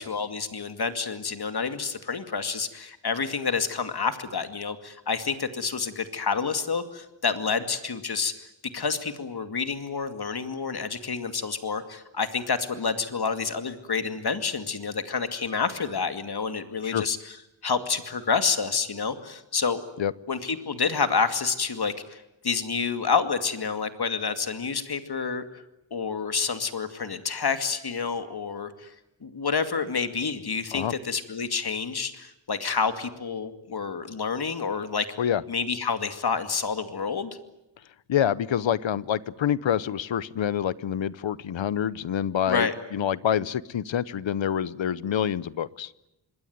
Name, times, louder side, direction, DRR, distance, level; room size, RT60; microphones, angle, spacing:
voice 1, 0.0-8.3 8.7-17.4 17.6-19.8 20.3-25.4 25.9-28.9 29.2-35.1 35.5-37.3 42.5-42.7, left 5 dB, 55° left, 9 dB, 2.4 m, -28 dB
voice 2, 38.1-45.9, left 9 dB, 90° left, 19 dB, 0.9 m, -27 dB
26.0 x 21.5 x 9.5 m, 0.90 s
wide cardioid pair, 85°, 44 cm